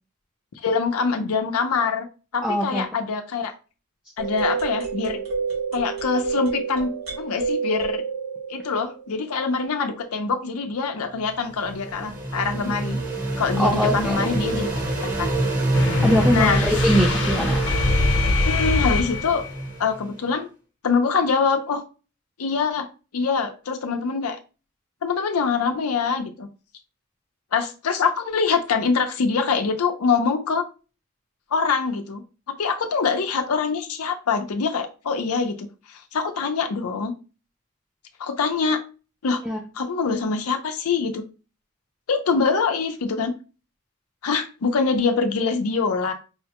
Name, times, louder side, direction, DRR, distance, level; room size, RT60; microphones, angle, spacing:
voice 1, 0.6-2.1 2.3-3.5 4.2-5.2 5.7-8.0 8.5-13.0 13.4-14.7 15.0-15.3 16.3-16.7 18.4-19.4 19.8-20.5 20.8-21.8 22.4-22.9 23.1-24.4 25.0-26.5 27.5-30.6 31.5-32.2 32.6-37.1 38.2-38.8 39.2-39.4 39.8-41.2 42.1-43.3 44.2-46.1, left 5 dB, 90° left, 6 dB, 0.5 m, -24 dB
voice 2, 2.4-2.9 13.6-14.3 16.0-17.6 39.4-39.6, equal, 5° right, 0 dB, 0.3 m, -22 dB
sound 1, 4.2-9.3, right 5 dB, 70° right, 1.8 m, -29 dB
sound 2, 11.3-20.1, right 2 dB, 40° right, 0.8 m, -26 dB
sound 3, 15.7-19.6, left 2 dB, 55° left, 0.8 m, -23 dB
5.5 x 2.1 x 2.8 m, 0.33 s
head